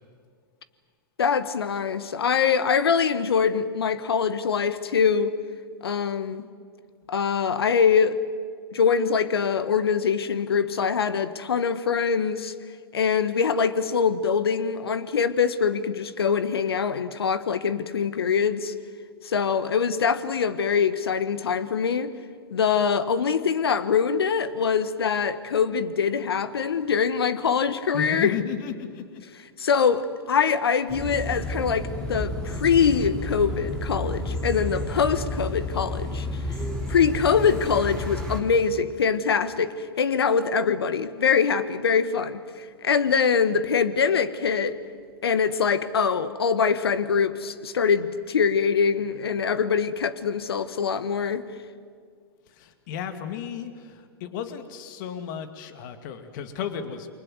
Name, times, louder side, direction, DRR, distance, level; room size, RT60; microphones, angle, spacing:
voice 1, 1.2-5.3 5.8-6.4 7.1-8.2 8.7-12.5 12.9-18.7 19.2-22.1 22.5-28.3 29.6-36.3 36.9-44.8 45.2-51.5, left 6 dB, 75° left, 1.5 m, -23 dB
voice 2, 27.9-29.2 52.5-57.1, left 8 dB, 55° left, 2.3 m, -34 dB
sound 1, 30.9-38.4, left 1 dB, 5° left, 6.1 m, -31 dB
29.0 x 24.0 x 7.9 m
hypercardioid pair, 105°, 13 cm